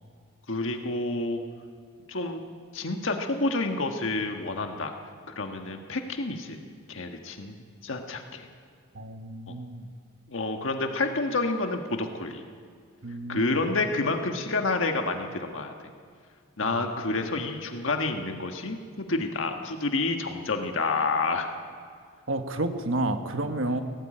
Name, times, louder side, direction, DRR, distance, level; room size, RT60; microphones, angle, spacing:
voice 1, 0.5-1.4 2.1-2.4 2.7-4.9 5.3-6.6 6.9-7.6 7.8-8.5 9.5-9.6 10.3-12.4 13.3-15.7 16.6-21.5 23.7-23.8, left 3 dB, 75° left, 4 dB, 1.5 m, -29 dB
voice 2, 8.9-9.9 13.0-13.6 16.6-16.7 22.3-23.8, right 2 dB, 75° right, 7 dB, 1.3 m, -30 dB
17.5 x 17.0 x 8.8 m, 2.1 s
head